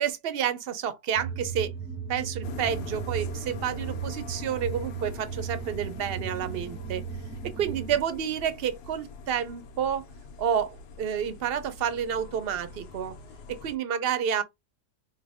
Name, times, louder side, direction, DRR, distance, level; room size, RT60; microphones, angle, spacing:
voice 1, 0.0-1.7 2.1-7.0 7.4-10.0 10.4-13.2 13.5-14.4, right 8 dB, 65° right, 0.5 m, -29 dB
sound 1, 1.2-8.0, right 6 dB, 10° right, 0.6 m, -36 dB
sound 2, 2.4-13.8, left 3 dB, 85° left, 1.3 m, -44 dB
5.6 x 2.1 x 3.5 m
omnidirectional pair, 1.7 m